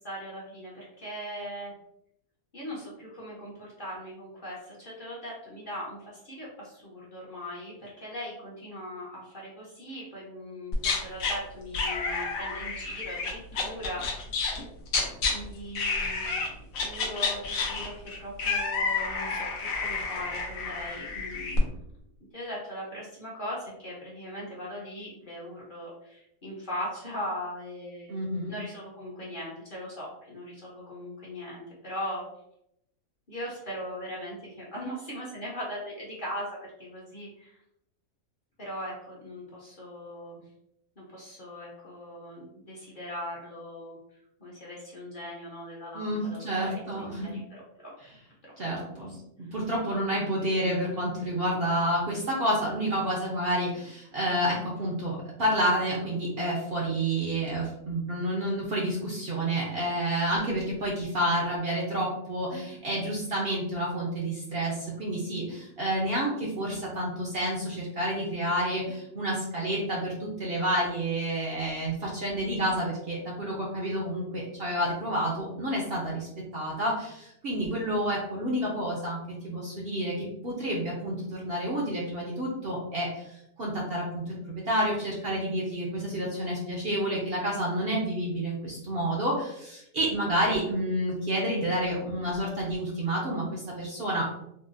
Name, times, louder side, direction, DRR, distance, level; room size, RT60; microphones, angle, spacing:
voice 1, 0.0-1.7 2.5-14.2 15.3-17.9 18.2-21.8 22.3-28.2 28.5-32.2 33.3-36.5 36.8-37.6 38.6-40.4 41.0-44.0 44.4-47.9 48.4-49.2, equal, 45° left, -5 dB, 0.8 m, -39 dB
sound 1, 10.7-11.4 11.7-15.3 15.8-16.5 16.7-21.6, left 4 dB, 75° left, 1.1 m, -30 dB
voice 2, 28.1-28.5 45.9-47.3 48.6-94.3, right 1 dB, 55° right, -3 dB, 0.7 m, -29 dB
3.9 x 2.1 x 2.4 m, 0.80 s
omnidirectional pair, 1.5 m